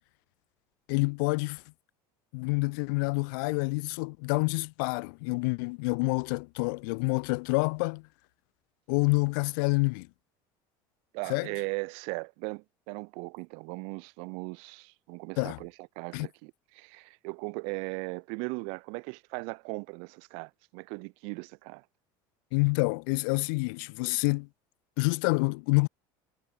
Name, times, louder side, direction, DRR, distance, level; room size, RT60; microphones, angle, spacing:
voice 1, 0.9-1.6 2.3-8.0 8.9-10.1 11.3-11.5 15.4-15.6 16.1-16.3 22.5-24.5 25.0-25.9, left 31 dB, 80° left, 1.1 m, -27 dB
voice 2, 11.1-21.8, right 36 dB, 70° right, 1.7 m, -38 dB
supercardioid pair, 125°, 11 cm